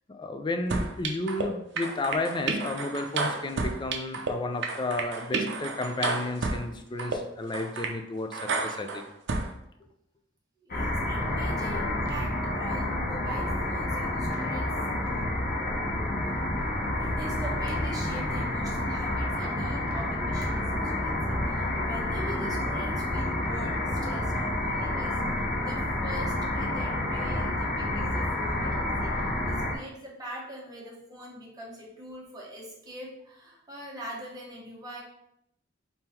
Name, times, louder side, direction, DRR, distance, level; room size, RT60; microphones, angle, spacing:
voice 1, 0.1-9.1, left 2 dB, 25° left, 7 dB, 0.4 m, -32 dB
sound 1, 0.7-1.4 1.8-4.3 4.6-6.6 7.0-7.2 7.5-7.9 8.3-9.5, right 3 dB, 65° right, 0.6 m, -30 dB
voice 2, 10.6-14.7 17.0-29.1 29.4-35.0, right 1 dB, 20° right, -4 dB, 1.1 m, -43 dB
sound 2, 10.7-29.8, left 1 dB, 50° left, 0.8 m, -29 dB
3.7 x 2.8 x 4.3 m, 0.77 s
head